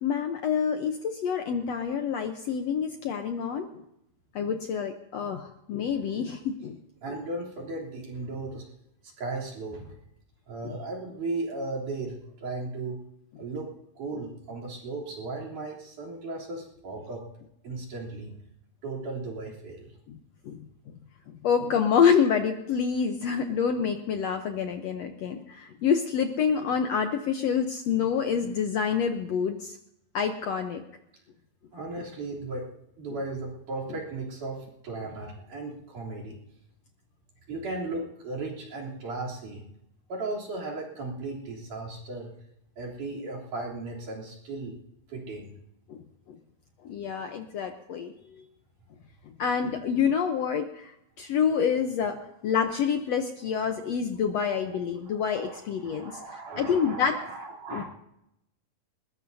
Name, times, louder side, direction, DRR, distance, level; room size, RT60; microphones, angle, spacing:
voice 1, 0.0-3.8 4.3-6.8 10.6-10.8 20.1-20.2 20.5-20.6 21.3-29.8 30.1-30.8 45.9-46.0 46.8-48.4 49.4-50.9 51.2-52.2 52.4-56.2 56.6-57.1 57.7-57.8, left 7 dB, 80° left, 5 dB, 1.5 m, -27 dB
voice 2, 7.0-8.6 9.2-9.9 10.5-13.0 13.4-13.7 14.0-17.2 17.6-18.3 18.8-19.9 31.7-32.7 33.0-36.4 37.5-39.6 40.1-42.3 42.8-44.8 45.1-45.5 54.5-54.6 55.0-57.8, right 2 dB, 60° right, -4 dB, 4.8 m, -36 dB
20.5 x 20.5 x 2.7 m, 0.80 s
omnidirectional pair, 4.1 m